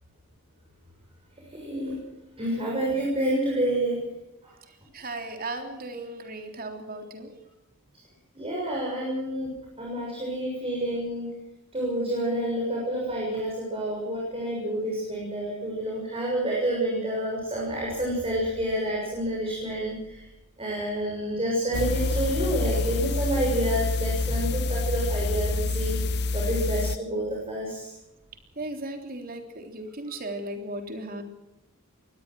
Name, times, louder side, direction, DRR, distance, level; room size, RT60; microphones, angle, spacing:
voice 1, 1.5-2.0 2.4-4.0 8.3-9.5 9.8-11.3 11.7-20.2 20.6-26.0 26.3-27.9, right 1 dB, 25° right, -3 dB, 6.9 m, -28 dB
voice 2, 4.7-7.3 28.6-31.2, right 2 dB, 45° right, 5 dB, 3.5 m, -36 dB
sound 1, 21.7-27.0, left 3 dB, 50° left, 0.7 m, -27 dB
22.5 x 19.0 x 6.3 m, 0.91 s
head